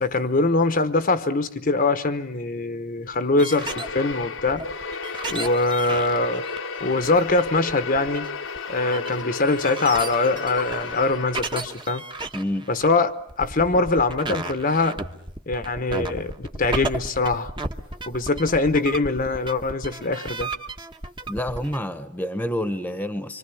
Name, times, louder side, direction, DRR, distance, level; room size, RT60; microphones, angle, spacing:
voice 1, 0.0-4.6 5.3-6.4 6.8-8.3 8.7-12.0 12.7-15.0 15.5-17.5 18.1-20.5, left 3 dB, 45° left, 1.0 m, -23 dB
sound 1, 3.1-21.8, right 2 dB, 25° right, 1.2 m, -34 dB
sound 2, 3.5-11.8, left 4 dB, 70° left, 1.1 m, -34 dB
voice 2, 12.3-12.7 21.3-23.4, left 1 dB, 10° left, 1.1 m, -28 dB
26.0 x 25.5 x 7.1 m
head